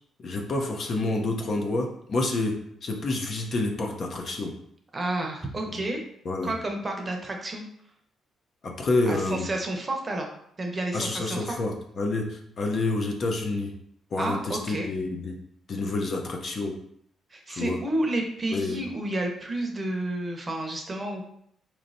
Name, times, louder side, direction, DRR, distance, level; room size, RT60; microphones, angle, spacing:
voice 1, 0.2-2.5 2.8-4.5 6.2-6.5 8.6-9.5 10.9-13.7 14.1-15.3 15.7-16.7 17.5-17.8 18.5-18.8, left 2 dB, 50° left, 2 dB, 0.7 m, -28 dB
voice 2, 4.9-6.0 6.4-7.6 9.1-10.3 10.6-11.6 14.2-14.9 17.3-21.2, right 1 dB, 30° right, 2 dB, 0.7 m, -30 dB
4.2 x 3.1 x 2.6 m, 0.70 s
cardioid pair, 90°, 0 cm